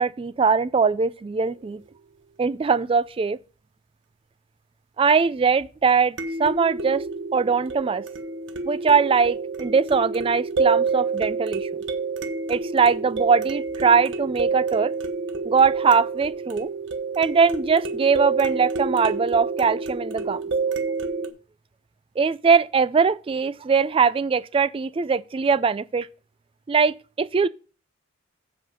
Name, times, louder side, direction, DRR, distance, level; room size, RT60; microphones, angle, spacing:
voice 1, 0.0-1.8 2.4-3.4 5.0-7.0 7.3-8.0 8.7-11.7 12.5-14.9 15.4-16.7 17.2-20.4 22.2-26.1 26.7-27.5, right 5 dB, 25° right, 0.3 m, -21 dB
sound 1, 1.5-1.6 6.2-21.3, right 4 dB, 60° right, 1.1 m, -28 dB
7.7 x 5.7 x 5.1 m
head